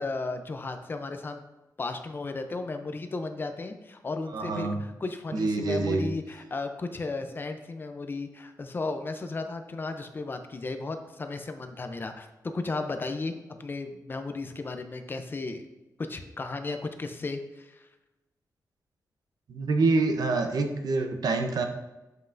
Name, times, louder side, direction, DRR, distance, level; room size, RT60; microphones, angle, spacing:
voice 1, 0.0-1.4 1.8-15.6 16.0-17.9, left 3 dB, 30° left, 7 dB, 0.5 m, -35 dB
voice 2, 4.3-4.8 5.3-6.1 19.5-21.6, right 3 dB, 75° right, 5 dB, 0.8 m, -26 dB
7.6 x 5.4 x 2.6 m, 1.0 s
wide cardioid pair, 145°, 7 cm